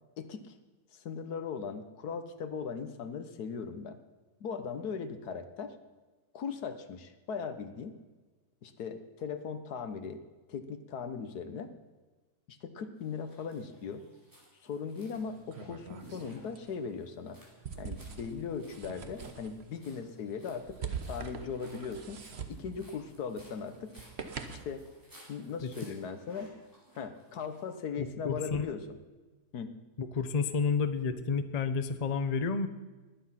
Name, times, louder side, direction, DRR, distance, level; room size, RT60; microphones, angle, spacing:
voice 1, 0.2-0.5 0.9-4.0 4.4-5.7 6.3-7.9 8.6-10.2 10.5-11.7 12.5-14.0 14.6-17.4 17.8-20.8 21.1-22.2 22.5-23.9 24.5-24.8 25.3-26.5 26.9-28.8 29.5-29.7, left 6 dB, 75° left, 10 dB, 1.6 m, -39 dB
sound 1, 13.0-27.8, right 1 dB, 10° right, 4.6 m, -59 dB
sound 2, 15.1-24.8, right 6 dB, 45° right, 1.2 m, -44 dB
voice 2, 28.0-28.7 30.0-32.7, left 5 dB, 35° left, 10 dB, 0.7 m, -30 dB
19.5 x 9.8 x 5.8 m, 1.2 s
omnidirectional pair, 1.7 m